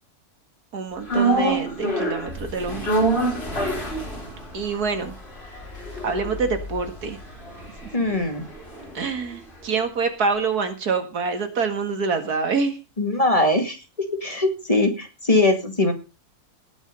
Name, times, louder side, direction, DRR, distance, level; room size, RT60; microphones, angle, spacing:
voice 1, 0.7-3.1 4.5-5.1 6.0-7.2 8.9-12.8, right 4 dB, 90° right, 7 dB, 2.4 m, -26 dB
sound 1, 1.1-9.4 9.7-9.8, right 2 dB, 40° left, 4.6 m, -27 dB
voice 2, 7.9-8.4 13.0-13.8 14.2-15.9, left 2 dB, 25° left, 5 dB, 2.2 m, -21 dB
18.5 x 6.3 x 5.4 m, 0.31 s
omnidirectional pair, 1.6 m